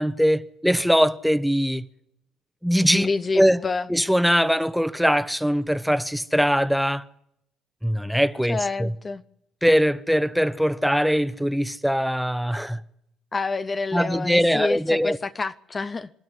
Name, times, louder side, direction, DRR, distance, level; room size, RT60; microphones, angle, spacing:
voice 1, 0.0-1.9 2.6-3.1 3.3-3.6 3.9-7.0 7.8-8.9 9.6-12.8 13.9-15.2, equal, ahead, 1.1 m, -21 dB
voice 2, 2.9-3.9 8.5-9.2 13.3-16.1, left 4 dB, 35° left, 0.7 m, -28 dB
26.0 x 12.0 x 9.7 m
supercardioid pair, 65°, 0 cm